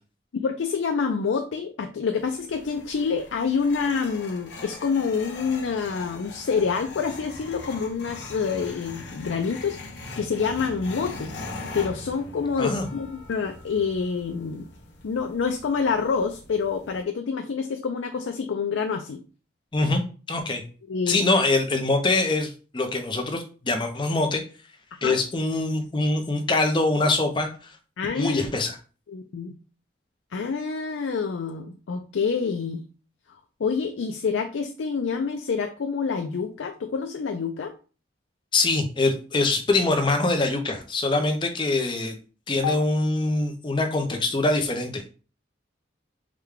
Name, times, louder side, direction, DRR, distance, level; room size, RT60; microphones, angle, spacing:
voice 1, 0.3-11.3 11.7-14.7 15.0-19.2 20.9-21.3 25.0-25.2 28.0-28.4 29.1-29.5 30.3-32.8 33.6-37.7 42.6-42.8, left 5 dB, 85° left, 6 dB, 0.4 m, -27 dB
sound 1, 2.2-17.0, left 3 dB, 70° left, 0.9 m, -41 dB
voice 2, 20.3-20.6 21.1-24.4 25.0-27.5 28.2-28.8 38.5-42.2 42.5-45.0, left 2 dB, 25° left, 4 dB, 0.6 m, -24 dB
4.8 x 2.2 x 3.6 m, 0.37 s
head